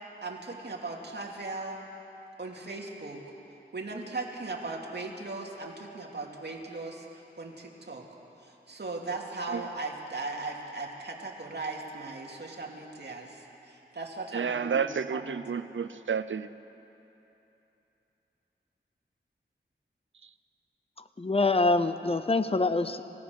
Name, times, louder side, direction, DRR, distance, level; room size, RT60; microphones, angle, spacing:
voice 1, 0.2-1.8 2.4-3.2 3.7-7.1 7.4-8.1 8.4-15.4, right 3 dB, 60° right, 2.6 m, -38 dB
voice 2, 14.3-16.5, right 6 dB, 80° right, 0.6 m, -30 dB
voice 3, 21.2-23.0, left 3 dB, 30° left, 0.8 m, -25 dB
27.0 x 16.5 x 6.5 m
wide cardioid pair, 90°, 20 cm